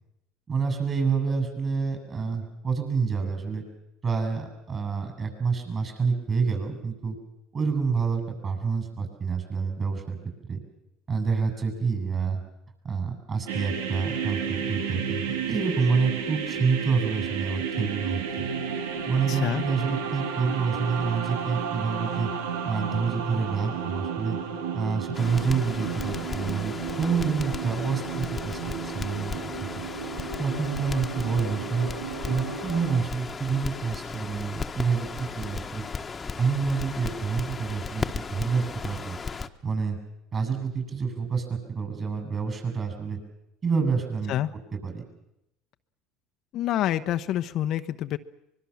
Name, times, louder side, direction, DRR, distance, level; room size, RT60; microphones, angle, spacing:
voice 1, 0.5-3.6 4.0-7.2 7.5-10.2 10.5-10.6 11.1-12.4 12.8-18.5 19.1-22.3 22.6-24.4 24.7-29.5 30.4-31.9 32.3-35.8 36.4-39.2 39.6-40.0 40.3-43.2 43.6-44.3 44.8-45.0, right 5 dB, 35° right, 6 dB, 7.7 m, -28 dB
sound 1, 13.5-33.0, right 6 dB, 85° right, 2.1 m, -32 dB
voice 2, 19.3-19.6 44.3-44.5 46.5-48.2, left 12 dB, 55° left, 9 dB, 0.9 m, -27 dB
Crackle, 25.1-39.5, left 5 dB, 25° left, 1.4 m, -36 dB
24.0 x 22.0 x 7.3 m, 0.86 s
supercardioid pair, 90°, 0 cm